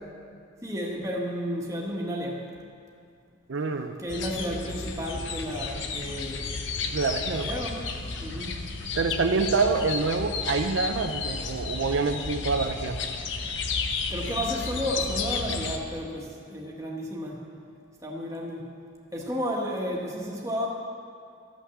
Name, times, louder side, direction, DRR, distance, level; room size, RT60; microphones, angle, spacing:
voice 1, 0.6-2.4 4.0-6.6 7.3-7.9 8.2-8.6 14.1-17.4 18.0-18.7 19.1-20.7, equal, 15° right, -2 dB, 1.3 m, -32 dB
voice 2, 3.5-4.0 6.9-7.6 9.0-13.0, right 4 dB, 70° right, 5 dB, 0.5 m, -26 dB
sound 1, 4.1-15.8, left 4 dB, 65° left, 0.8 m, -32 dB
13.5 x 6.0 x 7.0 m, 2.3 s
head